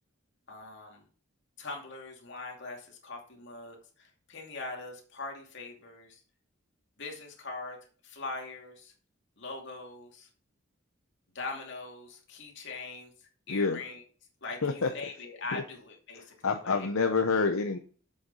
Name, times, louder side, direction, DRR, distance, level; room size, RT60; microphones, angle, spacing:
voice 1, 0.5-1.0 1.6-6.2 7.0-7.8 8.0-8.9 9.4-10.3 11.3-14.0 14.4-16.9, left 3 dB, 55° left, 0 dB, 2.5 m, -42 dB
voice 2, 13.5-13.8 14.6-14.9 15.5-15.6 16.1-17.8, left 4 dB, 75° left, 5 dB, 0.8 m, -28 dB
7.7 x 6.5 x 5.4 m, 0.41 s
head